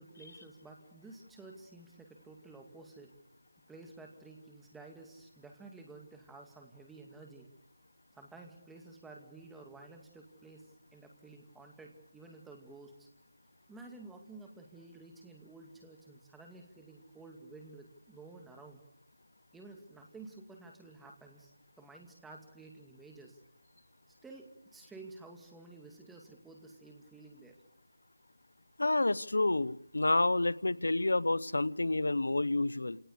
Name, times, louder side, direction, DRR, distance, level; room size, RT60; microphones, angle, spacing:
voice 1, 0.0-3.1 3.7-7.5 8.1-10.6 10.9-13.1 13.7-18.8 19.5-21.5 21.8-23.4 24.2-27.6, right 3 dB, 5° right, 2 dB, 2.2 m, -52 dB
voice 2, 28.8-33.0, left 2 dB, 75° left, 18 dB, 0.9 m, -29 dB
29.0 x 18.5 x 8.3 m, 0.85 s
figure-of-eight pair, 170°, 0 cm